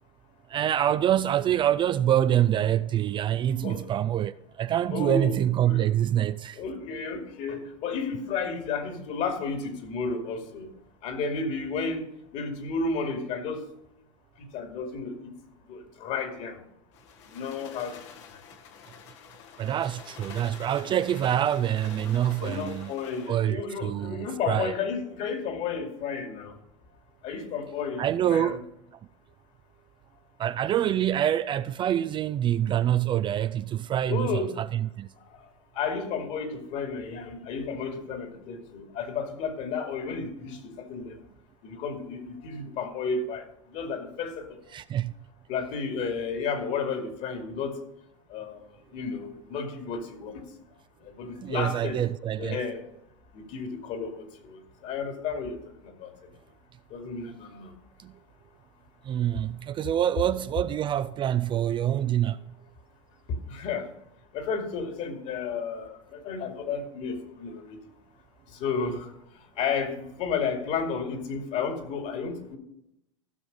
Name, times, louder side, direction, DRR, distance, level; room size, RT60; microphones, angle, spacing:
voice 1, 0.5-6.6 19.6-22.9 23.3-24.7 28.0-28.6 30.4-35.1 44.7-45.1 51.4-52.6 58.0-58.2 59.0-62.5, right 11 dB, 30° right, 0.4 m, -26 dB
voice 2, 4.9-5.4 5.6-5.9 6.5-10.7 11.0-13.6 14.4-15.2 15.7-16.6 17.3-18.0 22.4-26.6 27.2-28.6 34.1-34.6 35.7-41.2 41.6-44.5 45.5-47.8 48.3-48.6 48.9-50.4 51.0-52.0 52.4-52.8 53.3-55.6 55.8-56.1 56.9-57.7 63.3-63.9 64.3-67.8 68.5-69.1 69.6-72.6, left 5 dB, 50° left, 2.5 m, -32 dB
sound 1, 16.9-23.4, left 8 dB, 65° left, 1.6 m, -47 dB
15.5 x 6.2 x 5.3 m
hypercardioid pair, 100°, 16 cm